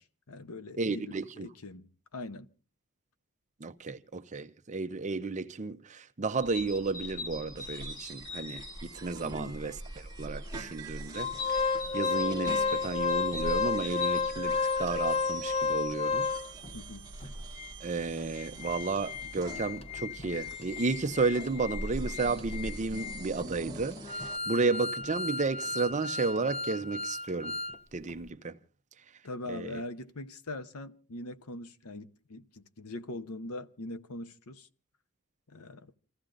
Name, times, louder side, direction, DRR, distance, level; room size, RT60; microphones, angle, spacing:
voice 1, 0.0-2.5 9.2-9.6 16.7-17.1 29.2-34.7 35.5-35.9, left 2 dB, 80° left, 0.9 m, -42 dB
voice 2, 0.8-1.5 3.6-16.3 17.8-24.0 24.5-27.6 27.9-28.6 29.5-29.8, right 3 dB, 35° right, 0.6 m, -33 dB
sound 1, 6.4-23.5, left 1 dB, 60° left, 5.7 m, -43 dB
sound 2, 7.6-24.4, right 4 dB, 15° right, 1.2 m, -47 dB
Organ, 11.1-16.7 17.2-17.3 17.6-17.7 18.2-27.8 28.1-28.2, left 4 dB, 25° left, 0.6 m, -33 dB
29.0 x 15.0 x 2.6 m
head